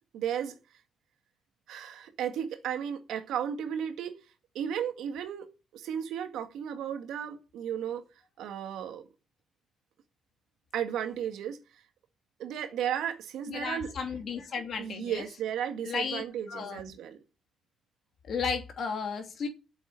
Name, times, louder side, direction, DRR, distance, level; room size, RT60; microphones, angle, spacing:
voice 1, 0.1-0.5 1.7-4.2 4.6-5.5 5.7-8.0 8.4-9.1 10.7-11.6 12.4-13.9 14.8-17.2, right 9 dB, 80° right, 1.8 m, -34 dB
voice 2, 13.5-15.2 15.8-16.8 18.3-19.5, left 5 dB, 60° left, 2.8 m, -34 dB
7.7 x 7.7 x 8.7 m
cardioid pair, 90°, 0 cm